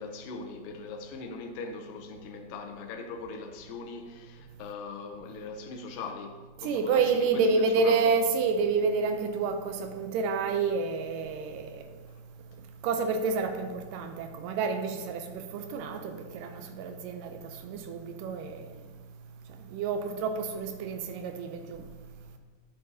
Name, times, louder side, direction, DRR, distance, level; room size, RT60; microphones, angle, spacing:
voice 1, 0.0-7.0 7.3-8.2, left 4 dB, 80° left, 2.3 m, -40 dB
voice 2, 6.6-11.8 12.8-18.6 19.7-21.8, right 4 dB, 80° right, 2.1 m, -29 dB
11.0 x 7.0 x 2.8 m
omnidirectional pair, 4.0 m